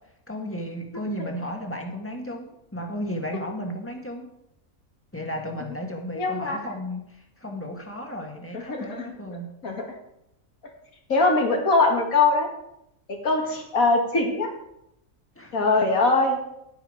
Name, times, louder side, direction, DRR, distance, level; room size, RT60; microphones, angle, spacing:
voice 1, 0.3-4.3 5.1-9.5 13.4-13.5 15.3-15.8, equal, 10° left, 2 dB, 1.5 m, -34 dB
voice 2, 6.2-6.6 8.5-9.1 9.6-9.9 11.1-12.5 13.1-14.5 15.5-16.4, left 3 dB, 85° left, 2 dB, 2.4 m, -22 dB
11.5 x 8.6 x 5.0 m, 0.81 s
omnidirectional pair, 1.4 m